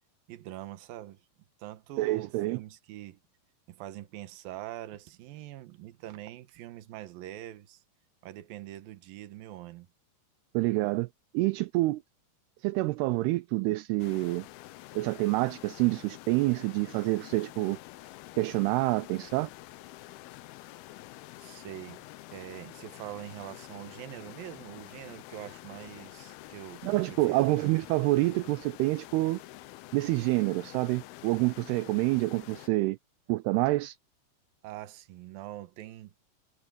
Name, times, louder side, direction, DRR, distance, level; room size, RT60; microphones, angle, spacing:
voice 1, 0.3-1.3 1.6-3.2 3.7-7.8 8.2-9.9 21.4-22.0 22.3-27.5 34.6-36.1, right 14 dB, 65° right, 2.6 m, -44 dB
voice 2, 2.0-2.6 10.5-11.1 11.3-12.0 12.6-14.5 14.9-17.8 18.4-19.5 26.8-29.4 29.9-33.0 33.3-34.0, right 20 dB, 80° right, 2.4 m, -27 dB
sound 1, 14.0-32.7, left 17 dB, 80° left, 2.4 m, -48 dB
omnidirectional pair, 5.0 m